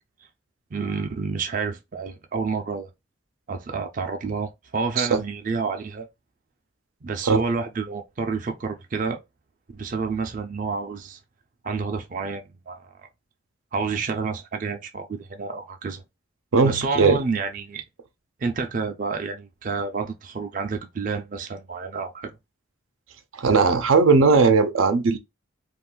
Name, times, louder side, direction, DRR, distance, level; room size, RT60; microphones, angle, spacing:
voice 1, 0.7-2.9 3.5-6.1 7.0-9.2 9.7-11.2 11.6-12.9 13.7-16.0 16.6-17.8 18.4-22.3, right 4 dB, 40° right, 0.4 m, -29 dB
voice 2, 16.5-17.2 23.3-25.2, right 4 dB, 90° right, 0.5 m, -18 dB
2.4 x 2.4 x 3.6 m
head